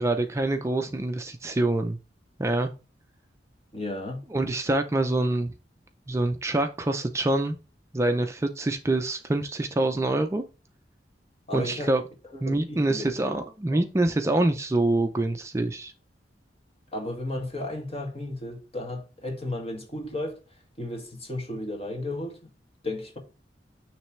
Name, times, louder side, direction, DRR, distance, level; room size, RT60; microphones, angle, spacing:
voice 1, 0.0-2.0 2.4-2.7 4.3-5.5 6.1-7.6 7.9-10.4 11.5-12.0 12.4-15.9, right 2 dB, 15° right, 0.4 m, -25 dB
voice 2, 3.7-4.3 11.5-11.9 12.3-13.4 13.7-13.8 16.9-20.4 20.8-22.5 22.8-23.2, left 1 dB, 35° left, 1.9 m, -34 dB
9.4 x 3.3 x 3.1 m
head